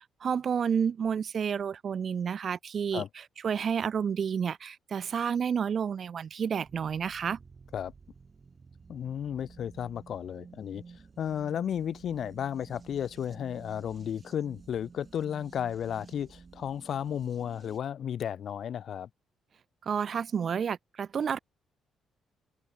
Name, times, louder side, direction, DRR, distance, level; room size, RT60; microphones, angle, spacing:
voice 1, 0.2-3.0 3.4-7.4 19.8-21.4, right 7 dB, 50° right, 0.9 m, -30 dB
sound 1, 6.6-17.8, right 5 dB, 35° right, 1.8 m, -52 dB
voice 2, 8.9-19.1, left 9 dB, 60° left, 1.5 m, -34 dB
open air
cardioid pair, 90°, 0 cm